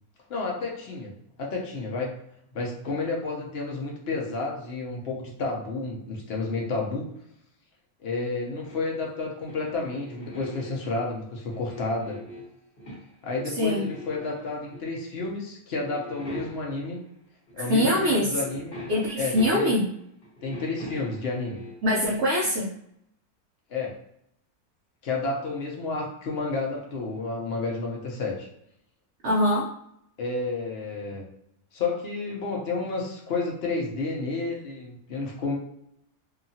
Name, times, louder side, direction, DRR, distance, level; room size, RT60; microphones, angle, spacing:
voice 1, 0.3-1.1 1.4-2.1 2.5-7.1 8.0-12.2 13.2-17.0 17.5-18.8 19.1-19.7 20.4-21.6 23.7-23.9 25.0-28.5 30.2-31.2 31.7-35.6, left 3 dB, 60° left, -1 dB, 0.7 m, -31 dB
sound 1, 8.6-11.0 11.5-13.1 13.4-14.8 15.2-15.4 15.7-16.9 17.5-17.6 17.8-19.9 20.2-21.8, left 1 dB, 40° left, 1.1 m, -42 dB
voice 2, 13.6-13.9 17.6-18.3 18.9-19.9 21.8-22.7 29.2-29.7, left 1 dB, 60° right, -5 dB, 0.7 m, -23 dB
2.8 x 2.4 x 2.7 m, 0.73 s
omnidirectional pair, 1.6 m